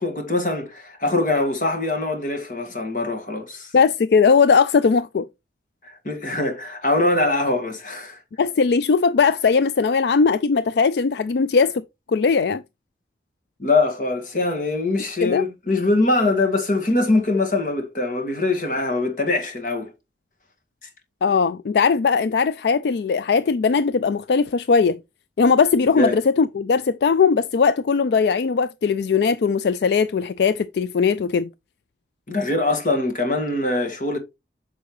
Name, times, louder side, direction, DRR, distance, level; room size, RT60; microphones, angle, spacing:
voice 1, 0.0-3.7 5.8-8.2 13.6-19.9 26.0-26.2 32.3-34.2, left 2 dB, 45° left, 1.9 m, -23 dB
voice 2, 3.7-5.3 8.4-12.6 15.2-15.5 21.2-25.0 25.4-31.5, left 5 dB, 70° left, 0.4 m, -19 dB
8.4 x 6.2 x 3.1 m
head